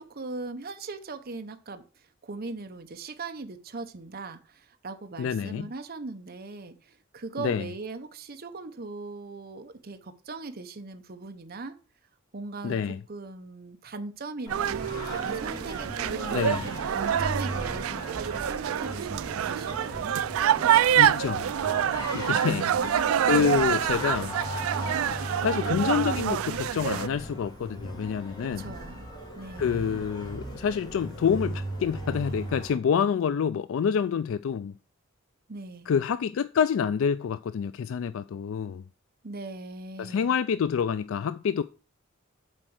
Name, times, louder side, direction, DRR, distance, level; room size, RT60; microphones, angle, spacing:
voice 1, 0.0-11.7 12.3-12.8 13.1-16.4 16.9-20.1 22.4-22.9 23.3-23.7 28.4-29.1 29.3-30.1 35.5-35.9 39.2-40.3, right 3 dB, 50° right, 0.9 m, -40 dB
voice 2, 5.2-5.7 7.4-7.7 12.6-13.0 16.3-16.7 21.0-21.5 22.1-22.7 23.2-24.4 25.4-28.7 29.6-34.7 35.9-38.8 40.0-41.6, left 7 dB, 70° left, 0.3 m, -27 dB
Singing, 14.5-32.7, right 1 dB, 20° left, 2.8 m, -37 dB
sound 1, 14.5-27.1, right 10 dB, 85° right, 0.3 m, -26 dB
7.5 x 4.5 x 6.3 m
head